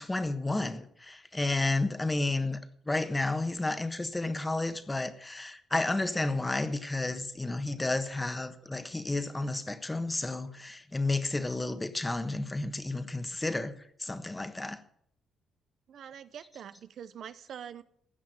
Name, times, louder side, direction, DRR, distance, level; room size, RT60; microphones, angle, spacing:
voice 1, 0.0-2.6 2.9-13.7 14.0-14.8, left 2 dB, 15° left, 1.3 m, -31 dB
voice 2, 15.9-17.8, right 8 dB, 65° right, 0.7 m, -44 dB
15.5 x 6.3 x 9.1 m
cardioid pair, 90°, 0 cm